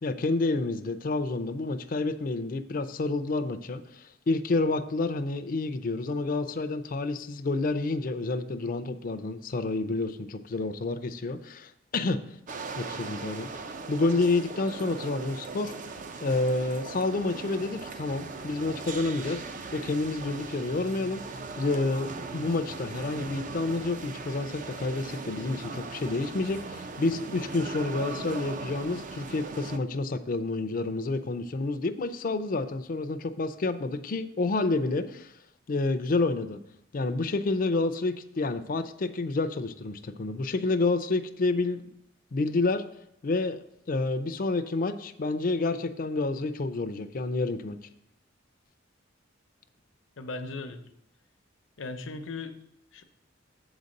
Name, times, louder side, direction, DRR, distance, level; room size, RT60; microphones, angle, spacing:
voice 1, 0.0-12.2 12.8-13.5 13.9-15.7 16.2-19.4 19.7-21.2 21.6-35.3 35.7-36.6 36.9-41.8 42.3-42.8 43.2-43.6 43.9-47.8, left 3 dB, 45° left, 9 dB, 0.5 m, -29 dB
sound 1, 12.5-29.8, right 4 dB, 40° right, 0.5 m, -39 dB
voice 2, 50.2-50.8 51.8-52.6 52.9-53.0, left 3 dB, 80° left, 7 dB, 0.8 m, -37 dB
7.9 x 4.0 x 6.4 m, 0.78 s
head